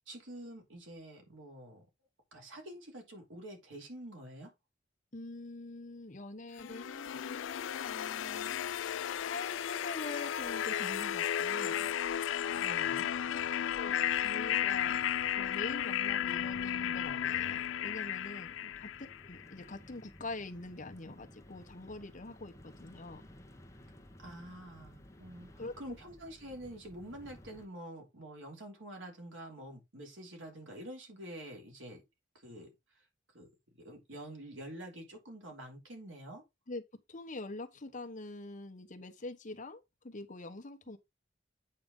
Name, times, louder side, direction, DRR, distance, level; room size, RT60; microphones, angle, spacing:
voice 1, 0.1-1.8 2.3-4.5 11.6-11.9 12.5-13.1 18.6-18.7 24.2-32.0 32.3-32.7 33.3-33.5 33.8-36.4, right 1 dB, 85° right, 3.1 m, -47 dB
voice 2, 5.1-8.6 9.2-11.8 13.3-13.4 13.7-14.0 14.2-15.0 15.4-18.9 19.2-23.2 25.6-25.7 36.7-36.8 37.1-41.0, left 2 dB, 40° left, 1.1 m, -44 dB
sound 1, 6.6-19.5, left 10 dB, 75° left, 0.4 m, -34 dB
sound 2, 12.5-27.7, left 1 dB, 15° left, 1.0 m, -56 dB
8.6 x 5.0 x 3.8 m
head